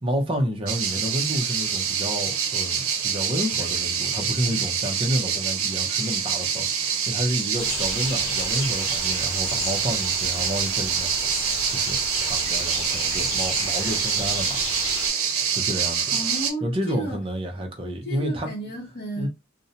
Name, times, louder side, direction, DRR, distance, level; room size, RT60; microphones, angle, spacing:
voice 1, 0.0-6.7 7.1-11.1 11.7-14.6 15.5-16.1 16.6-18.5 19.2-19.3, equal, 25° right, 0.6 m, -29 dB
sound 1, 0.7-16.5, right 7 dB, 85° right, 0.6 m, -26 dB
sound 2, 7.6-15.1, left 3 dB, 80° left, 0.9 m, -34 dB
voice 2, 16.1-17.2 18.0-19.3, right 1 dB, 45° left, 0.7 m, -33 dB
2.5 x 2.1 x 2.7 m
head